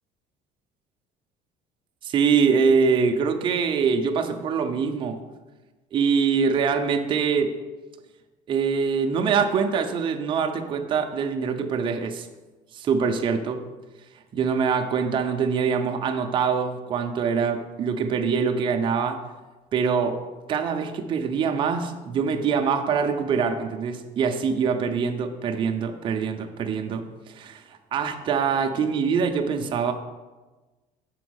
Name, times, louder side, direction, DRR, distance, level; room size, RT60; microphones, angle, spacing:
voice 1, 2.0-5.2 5.9-7.6 8.5-12.3 12.7-13.6 14.3-19.2 19.7-20.2 20.5-29.9, right 6 dB, 30° right, 4 dB, 0.5 m, -24 dB
6.1 x 4.4 x 6.2 m, 1.2 s
cardioid pair, 165°, 16 cm